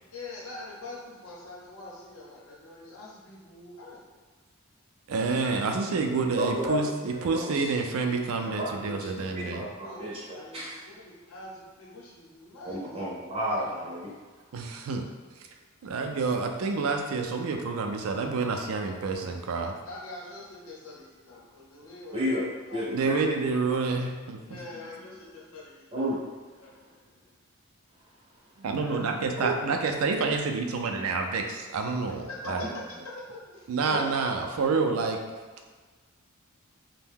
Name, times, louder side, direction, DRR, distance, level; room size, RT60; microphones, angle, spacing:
voice 1, 0.1-4.0 9.8-12.9 19.8-22.4 22.7-23.1 24.4-27.3 28.7-29.1 32.1-33.7, left 2 dB, 80° left, -4 dB, 0.8 m, -44 dB
voice 2, 5.1-9.6 14.5-15.1 15.8-19.7 22.9-24.6 28.6-32.7 33.7-35.2, right 4 dB, 80° right, 3 dB, 0.4 m, -28 dB
voice 3, 6.4-6.8 7.3-7.6 8.4-8.9 9.3-10.2 10.5-10.8 12.6-14.1 22.1-22.4 22.7-23.2 25.9-26.2 29.4-29.5 33.9-34.0, equal, 30° right, -5 dB, 0.6 m, -31 dB
2.7 x 2.1 x 3.5 m, 1.4 s
head